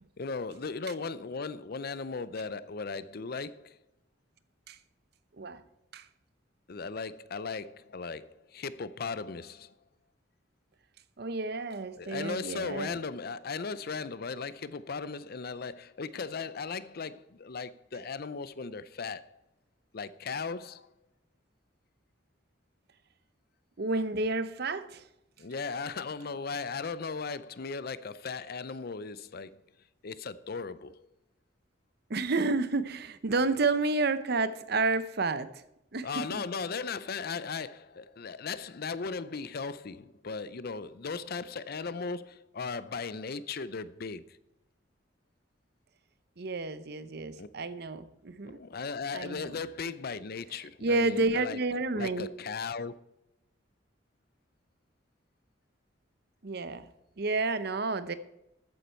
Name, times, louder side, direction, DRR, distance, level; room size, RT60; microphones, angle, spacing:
voice 1, 0.2-3.8 6.7-9.7 12.0-19.3 19.9-20.9 25.4-29.6 30.0-31.1 36.0-44.4 47.4-47.5 48.5-51.6 51.9-52.9, left 4 dB, 55° left, 0.6 m, -37 dB
voice 2, 11.2-13.0 23.8-25.0 32.1-35.6 35.9-36.4 46.4-48.6 49.1-49.5 50.8-52.3 56.4-56.9 57.2-58.1, right 3 dB, 55° right, 0.8 m, -30 dB
13.5 x 9.4 x 4.5 m
head